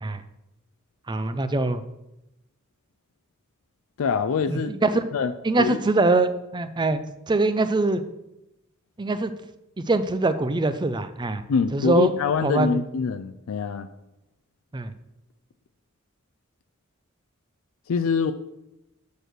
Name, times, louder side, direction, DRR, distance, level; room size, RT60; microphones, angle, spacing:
voice 1, 1.1-1.8 4.5-5.0 5.4-8.0 9.0-9.3 9.8-11.4 11.7-12.1 12.4-12.8 14.7-14.9, right 2 dB, 20° right, 11 dB, 0.5 m, -23 dB
voice 2, 4.0-4.7 5.1-5.3 5.6-5.8 11.5-13.9 17.9-18.3, left 5 dB, 75° left, 9 dB, 0.4 m, -24 dB
6.6 x 4.6 x 6.6 m, 0.91 s
head